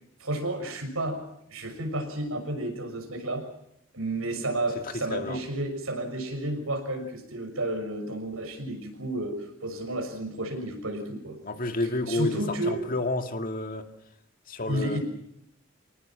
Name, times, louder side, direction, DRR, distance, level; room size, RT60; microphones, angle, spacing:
voice 1, 0.2-1.2 1.5-3.5 3.9-11.4 12.1-12.8 14.7-15.0, right 1 dB, 85° right, 5 dB, 6.5 m, -31 dB
voice 2, 4.8-5.4 11.4-13.9 14.5-15.0, left 2 dB, 45° left, 6 dB, 2.1 m, -30 dB
27.0 x 19.0 x 7.6 m, 0.75 s
head